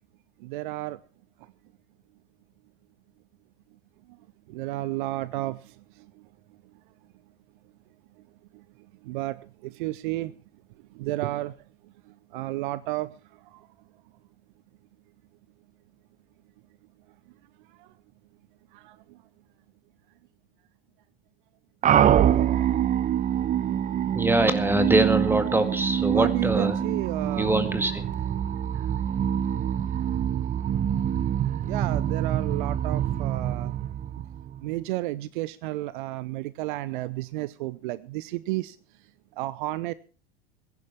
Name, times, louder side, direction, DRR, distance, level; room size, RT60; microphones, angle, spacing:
voice 1, 0.4-1.0 4.5-5.7 9.0-10.3 10.9-11.5 12.3-13.1 13.5-13.7 17.8-17.9 18.7-19.0 26.1-27.5 31.7-33.7 34.6-38.8 39.4-39.9, right 17 dB, 55° right, 18 dB, 0.8 m, -32 dB
sound 1, 21.8-34.7, right 10 dB, 25° right, 0.8 m, -25 dB
voice 2, 24.1-26.8 27.4-28.1, right 2 dB, 5° right, 10 dB, 2.1 m, -23 dB
21.0 x 11.0 x 4.6 m, 0.36 s
figure-of-eight pair, 80°, 30 cm